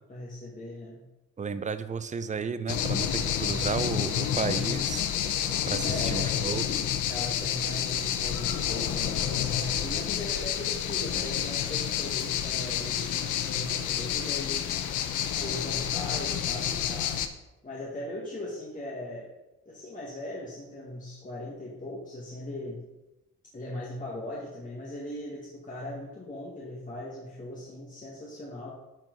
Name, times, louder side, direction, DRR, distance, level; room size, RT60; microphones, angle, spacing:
voice 1, 0.1-1.0 3.4-3.9 5.8-6.5 6.9-14.6 15.4-17.3 17.6-19.3 19.7-22.8 23.5-28.7, left 1 dB, 25° left, -5 dB, 1.9 m, -39 dB
voice 2, 1.4-5.1 5.7-6.6, right 5 dB, 25° right, 12 dB, 0.5 m, -33 dB
sound 1, 2.7-17.3, left 9 dB, 80° left, 0.7 m, -29 dB
11.5 x 4.5 x 4.0 m, 0.99 s
cardioid pair, 90°, 30 cm